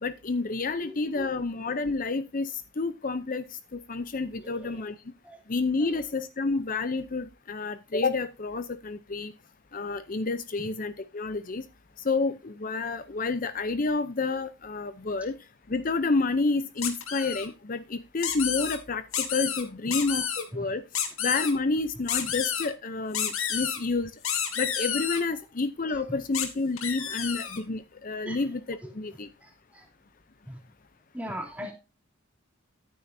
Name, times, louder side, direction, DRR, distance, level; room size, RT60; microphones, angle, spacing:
voice 1, 0.0-3.4 3.7-5.0 5.5-9.3 9.7-11.6 12.0-15.3 15.7-20.8 21.2-24.1 24.6-29.3, left 3 dB, 40° left, 0.6 m, -29 dB
voice 2, 0.7-1.3 4.4-4.8 5.2-5.4 5.8-6.0 20.5-20.7 25.9-26.2 28.3-28.4 29.4-29.9 30.5-30.6 31.1-31.7, equal, 5° right, 2.8 m, -40 dB
sound 1, 16.8-17.5 18.2-18.8 19.1-19.6 19.9-20.4 20.9-21.5 22.1-22.7 23.1-23.8 24.2-25.2 26.3-26.5 26.8-27.6, left 8 dB, 90° left, 2.5 m, -30 dB
13.5 x 9.4 x 2.7 m
head